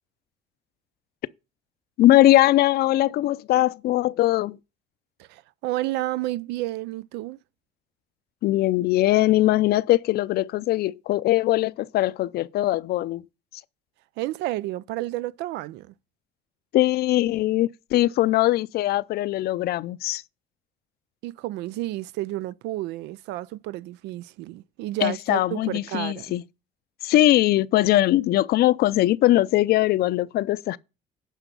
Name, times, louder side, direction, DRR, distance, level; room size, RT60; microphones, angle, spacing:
voice 1, 2.0-4.6 8.4-13.2 16.7-20.2 25.0-26.4 27.0-30.8, left 15 dB, 70° left, 0.5 m, -21 dB
voice 2, 5.2-7.4 14.2-15.9 21.2-26.3, right 16 dB, 90° right, 0.4 m, -31 dB
10.0 x 5.6 x 5.2 m
cardioid pair, 110°, 17 cm